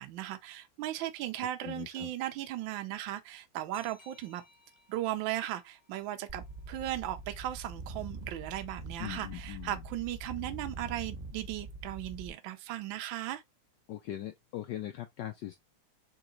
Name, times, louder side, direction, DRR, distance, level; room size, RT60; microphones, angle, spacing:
voice 1, 0.0-4.4 4.9-13.4, right 13 dB, 70° right, 1.3 m, -37 dB
voice 2, 1.6-2.1 9.0-9.8 13.9-15.6, left 13 dB, 75° left, 1.0 m, -40 dB
sound 1, 3.7-7.1, left 2 dB, 55° left, 0.4 m, -63 dB
sound 2, 6.3-12.3, right 2 dB, 25° right, 0.9 m, -44 dB
3.9 x 3.1 x 3.7 m
omnidirectional pair, 2.4 m